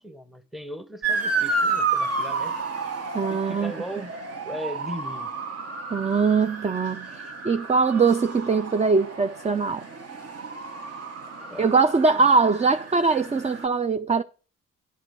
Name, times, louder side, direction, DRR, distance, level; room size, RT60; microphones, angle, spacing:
voice 1, 0.0-2.6 3.3-4.2 4.4-5.4 11.3-11.8 12.1-12.2, equal, ahead, 0.9 m, -38 dB
Motor vehicle (road) / Siren, 1.0-13.6, right 4 dB, 45° right, 1.5 m, -31 dB
voice 2, 3.1-3.7 5.9-9.8 11.6-14.2, right 4 dB, 20° right, 0.5 m, -22 dB
10.0 x 5.0 x 7.8 m
cardioid pair, 70°, 34 cm